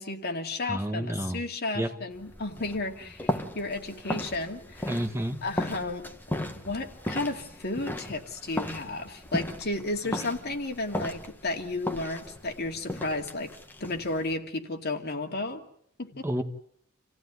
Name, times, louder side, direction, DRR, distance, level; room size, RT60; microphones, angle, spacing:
voice 1, 0.0-5.0 5.4-6.1 6.6-13.5 13.8-15.6 16.0-16.3, left 2 dB, 50° left, 4 dB, 2.6 m, -33 dB
voice 2, 0.7-1.4 1.7-1.9 4.9-5.4 16.2-16.4, equal, 15° right, 7 dB, 1.5 m, -30 dB
sound 1, 2.1-14.3, left 1 dB, 10° left, 1.8 m, -36 dB
28.5 x 16.0 x 9.6 m, 0.69 s
head